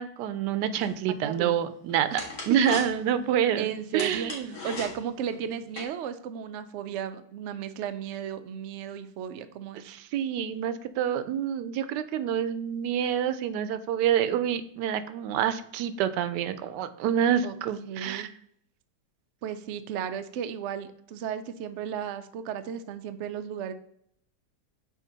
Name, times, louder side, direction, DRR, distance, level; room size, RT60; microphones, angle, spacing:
voice 1, 0.0-3.7 3.9-4.5 9.8-18.3, right 9 dB, 90° right, 12 dB, 1.2 m, -27 dB
sound 1, 0.8-5.8, left 2 dB, 50° left, 2.0 m, -40 dB
voice 2, 1.1-1.5 2.1-2.2 3.6-4.4 4.6-9.8 17.4-17.5 17.9-18.3 19.4-23.7, right 8 dB, 70° right, 9 dB, 0.6 m, -34 dB
6.3 x 4.3 x 3.9 m, 0.69 s
omnidirectional pair, 1.8 m